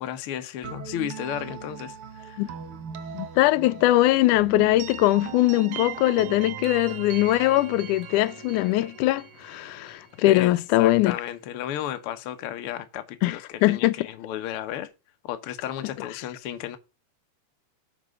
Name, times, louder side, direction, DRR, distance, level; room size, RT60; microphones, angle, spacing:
voice 1, 0.0-2.4 10.2-14.9 15.2-16.8, left 11 dB, 65° left, 1.4 m, -34 dB
sound 1, 0.6-10.4, right 9 dB, 65° right, 1.4 m, -39 dB
voice 2, 3.1-11.2 13.2-13.4 13.6-13.9, left 16 dB, 85° left, 2.1 m, -21 dB
7.4 x 5.3 x 6.4 m
omnidirectional pair, 3.5 m